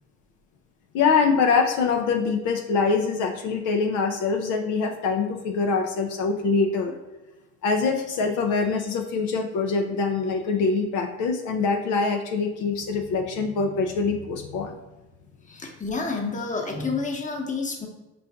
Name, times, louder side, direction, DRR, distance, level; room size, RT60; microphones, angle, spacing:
voice 1, 0.9-7.0 7.6-14.7, left 4 dB, 75° left, 4 dB, 0.5 m, -24 dB
voice 2, 15.5-17.9, left 4 dB, 25° left, 1 dB, 0.9 m, -29 dB
4.6 x 2.5 x 3.4 m, 1.1 s
supercardioid pair, 70°, 31 cm